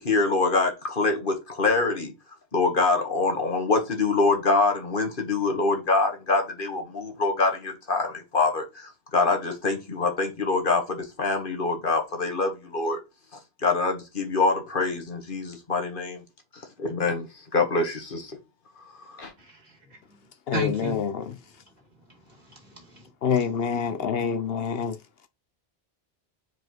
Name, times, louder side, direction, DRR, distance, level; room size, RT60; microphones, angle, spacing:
voice 1, 0.0-2.1 2.5-13.0 13.6-16.2 16.8-17.3 17.5-18.4 19.0-19.3, left 3 dB, 55° left, 1.6 m, -25 dB
voice 2, 19.4-20.0 20.5-21.0 22.4-23.1 23.4-24.1, equal, 45° right, 2.2 m, -35 dB
voice 3, 20.5-21.2 23.2-24.9, left 6 dB, 70° left, 0.9 m, -26 dB
4.8 x 4.4 x 4.5 m
omnidirectional pair, 1.0 m